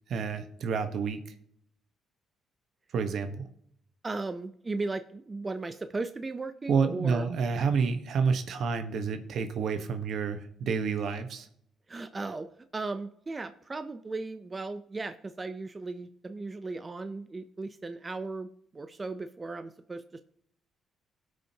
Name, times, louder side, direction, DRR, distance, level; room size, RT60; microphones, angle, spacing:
voice 1, 0.1-1.2 2.9-3.4 6.7-11.5, right 5 dB, 65° right, 8 dB, 1.1 m, -29 dB
voice 2, 4.0-7.3 11.9-20.2, right 3 dB, 25° right, 10 dB, 0.6 m, -36 dB
18.0 x 6.4 x 2.9 m, 0.70 s
cardioid pair, 90°, 0 cm